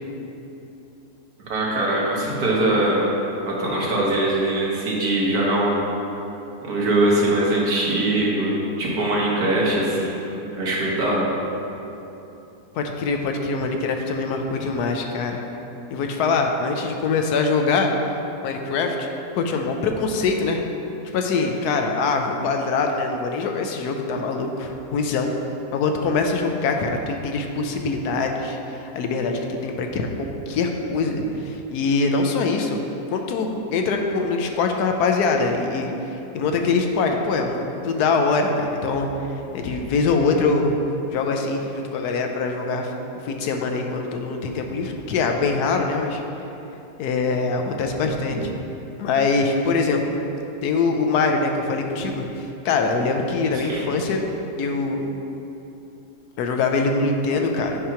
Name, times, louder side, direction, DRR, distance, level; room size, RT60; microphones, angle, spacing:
voice 1, 1.5-3.2 3.5-5.8 6.6-11.3 53.6-53.8, right 1 dB, 75° right, -5 dB, 1.7 m, -22 dB
voice 2, 12.7-15.4 15.9-17.9 18.4-19.1 19.4-20.6 21.1-25.3 25.7-32.8 33.1-39.1 39.5-40.7 41.1-42.9 43.2-46.2 47.0-48.5 49.0-50.2 50.6-54.2 54.6-55.1 56.4-57.8, left 4 dB, 90° left, 3 dB, 1.2 m, -23 dB
8.3 x 3.0 x 5.6 m, 2.9 s
omnidirectional pair, 1.6 m